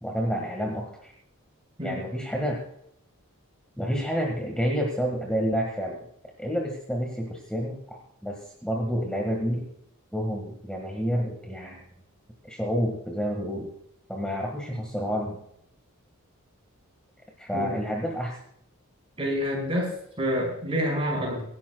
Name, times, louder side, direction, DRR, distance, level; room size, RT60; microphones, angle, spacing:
voice 1, 0.0-1.1 1.8-2.6 3.8-6.0 6.4-9.6 10.1-11.8 12.5-13.7 14.1-15.4 17.4-18.4, equal, 5° left, 0 dB, 1.7 m, -29 dB
voice 2, 19.2-19.9 20.2-21.4, equal, 25° right, -1 dB, 5.4 m, -27 dB
24.5 x 11.5 x 2.3 m, 0.72 s
head